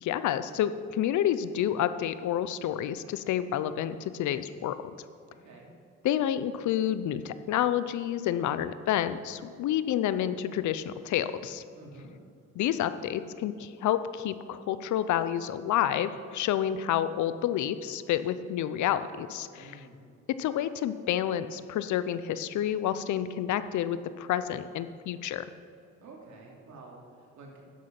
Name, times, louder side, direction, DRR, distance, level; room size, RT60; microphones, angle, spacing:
voice 1, 0.0-4.8 6.0-11.6 12.6-19.8 20.4-25.5, left 11 dB, 75° left, 13 dB, 0.6 m, -29 dB
voice 2, 5.3-5.7 11.7-12.1 19.6-20.0 26.0-27.6, right 2 dB, 70° right, -1 dB, 2.7 m, -49 dB
10.5 x 7.6 x 5.8 m, 2.3 s
cardioid pair, 90°, 30 cm